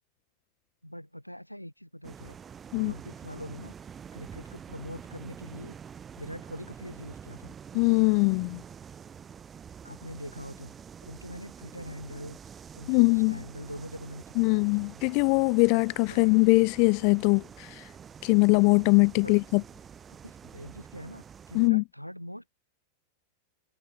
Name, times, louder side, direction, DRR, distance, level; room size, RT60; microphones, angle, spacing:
voice 1, 0.8-2.4 2.7-3.7 4.1-5.8 6.2-7.5 9.8-10.8 11.0-12.4 12.7-15.0 16.1-16.3 19.1-19.3 20.2-22.5, equal, 90° left, 1.5 m, -43 dB
sound 1, 2.0-21.7, right 7 dB, 20° right, 6.7 m, -47 dB
voice 2, 7.7-8.6 12.9-13.4 14.4-17.9 18.2-19.6 21.5-21.8, left 40 dB or more, 45° left, 0.5 m, -22 dB
figure-of-eight pair, 90°, 0 cm